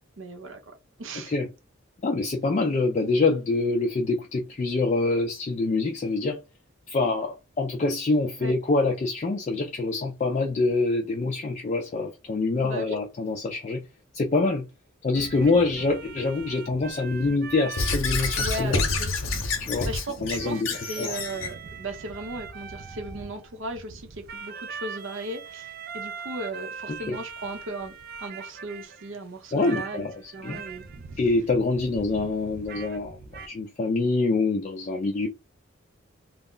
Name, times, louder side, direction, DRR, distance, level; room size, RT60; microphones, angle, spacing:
voice 1, 0.2-1.3 8.4-8.6 12.6-13.0 15.4-15.5 18.3-19.1 19.9-27.9 28.2-30.0 30.3-30.8, right 1 dB, 70° right, 0.7 m, -36 dB
voice 2, 2.0-6.4 6.9-13.8 14.1-14.7 15.0-18.8 19.6-19.9 20.2-20.7 21.0-21.2 26.9-27.2 29.5-30.6 31.2-33.2 33.5-35.3, left 3 dB, 35° left, 0.3 m, -25 dB
sound 1, 15.1-29.2 29.6-33.5, right 5 dB, 45° right, 0.3 m, -41 dB
Squeak / Writing, 17.8-21.5, left 3 dB, 80° left, 0.7 m, -28 dB
2.3 x 2.0 x 3.7 m
head